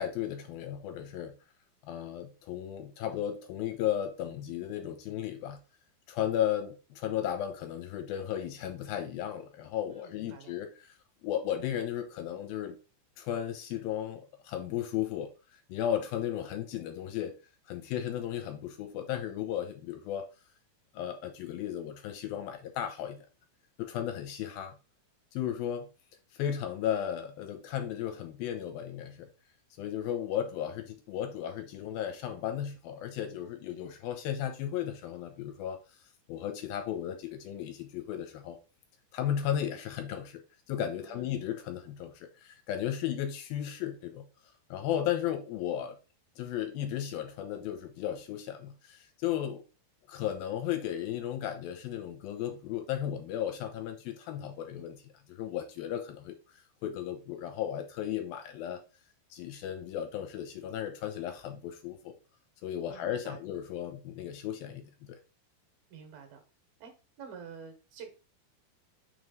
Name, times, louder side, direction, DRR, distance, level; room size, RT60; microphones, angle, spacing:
voice 1, 0.0-1.3 1.8-5.6 6.1-10.9 11.2-12.8 13.2-15.3 15.7-17.3 17.7-20.3 20.9-23.3 23.8-24.8 25.3-25.9 26.3-29.3 29.8-35.8 36.3-38.6 39.1-40.4 40.7-44.2 44.7-46.0 46.4-49.6 50.1-56.3 56.8-58.8 59.3-62.1 62.6-65.2, left 10 dB, 75° left, 2.6 m, -35 dB
voice 2, 9.9-10.5 41.0-41.3 62.9-63.4 65.9-66.4 66.8-66.9 67.2-68.1, right 6 dB, 75° right, 2.9 m, -48 dB
6.1 x 3.2 x 5.1 m
omnidirectional pair, 4.5 m